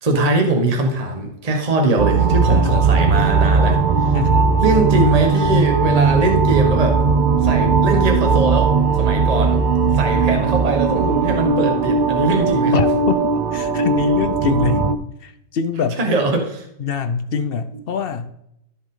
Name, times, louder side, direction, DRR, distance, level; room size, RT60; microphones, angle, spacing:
voice 1, 0.0-3.8 4.1-4.2 4.6-7.0 7.4-9.6 9.9-12.8 16.0-16.6, right 2 dB, 25° right, 2 dB, 1.3 m, -21 dB
sound 1, 2.0-15.0, right 4 dB, 85° right, 0.4 m, -18 dB
voice 2, 2.5-2.8 4.1-4.5 12.7-14.9 15.2-16.0 16.8-18.3, left 6 dB, 60° left, 10 dB, 0.6 m, -24 dB
14.0 x 5.2 x 3.8 m, 0.78 s
omnidirectional pair, 1.6 m